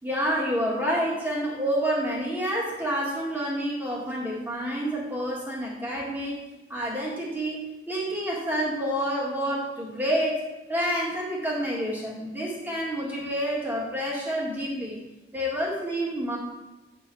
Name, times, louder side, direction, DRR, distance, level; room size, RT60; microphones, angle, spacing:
voice 1, 0.0-6.4 6.7-7.6 7.9-10.4 10.7-15.0 15.3-16.4, equal, 10° right, -4 dB, 1.9 m, -28 dB
9.0 x 3.8 x 6.0 m, 1.1 s
head